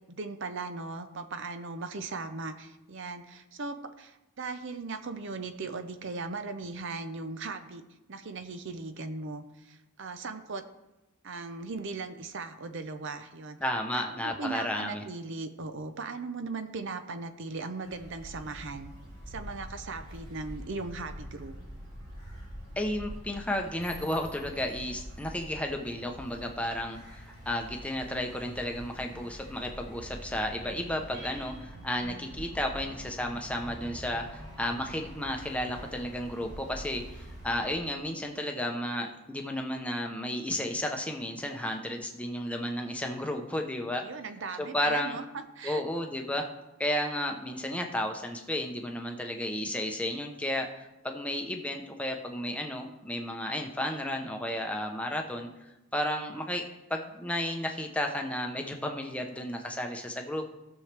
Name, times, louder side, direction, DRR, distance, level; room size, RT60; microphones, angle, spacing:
voice 1, 0.1-7.8 8.1-10.7 11.2-13.6 14.0-18.9 19.3-21.5 44.0-45.8, right 3 dB, 55° right, 9 dB, 0.6 m, -38 dB
voice 2, 13.6-15.0 22.8-44.0 44.6-45.2 45.6-46.5 46.8-55.5 55.9-56.6 56.9-60.5, left 1 dB, 5° left, 3 dB, 0.7 m, -33 dB
sound 1, 17.8-37.8, equal, 90° right, 3.7 m, -45 dB
16.0 x 6.4 x 3.4 m, 0.99 s
head